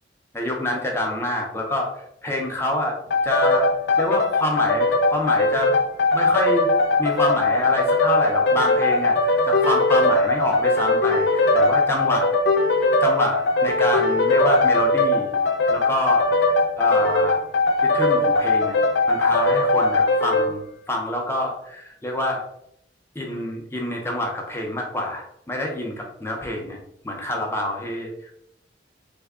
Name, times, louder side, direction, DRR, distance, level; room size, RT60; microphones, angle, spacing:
voice 1, 0.3-3.0 3.2-3.7 4.0-5.7 6.1-6.7 7.0-12.3 13.0-15.3 15.7-16.3 16.8-17.4 17.8-18.8 19.1-22.4 23.1-26.8 27.0-28.1, left 1 dB, 15° left, 0 dB, 0.6 m, -26 dB
sound 1, 3.1-20.5, left 2 dB, 65° left, 0.4 m, -20 dB
3.4 x 2.2 x 3.5 m, 0.74 s
head